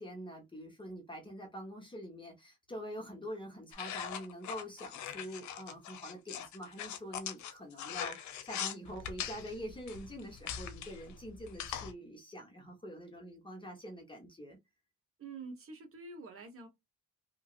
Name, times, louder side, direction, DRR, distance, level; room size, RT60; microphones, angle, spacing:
voice 1, 0.0-14.6, equal, 15° left, 1.1 m, -45 dB
sound 1, 3.7-11.9, left 9 dB, 70° left, 0.6 m, -41 dB
voice 2, 15.2-16.7, right 3 dB, 45° right, 1.3 m, -47 dB
2.9 x 2.7 x 2.5 m
cardioid pair, 90°, 30 cm